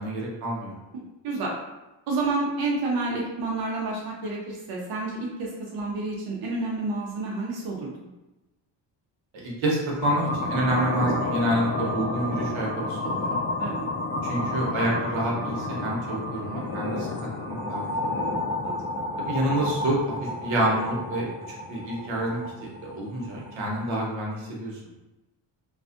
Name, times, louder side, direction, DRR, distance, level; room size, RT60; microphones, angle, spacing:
voice 1, 0.0-0.8 9.3-13.4 14.2-17.1 17.4-18.1 19.2-24.8, right 1 dB, 80° right, -2 dB, 0.9 m, -28 dB
voice 2, 0.9-1.5 2.1-7.9 13.6-13.8 18.1-18.3 18.6-18.7, right 3 dB, 55° right, -3 dB, 0.6 m, -30 dB
sound 1, 10.0-24.0, left 2 dB, 35° left, 0.4 m, -31 dB
2.4 x 2.4 x 2.4 m, 1.0 s
cardioid pair, 130°, 46 cm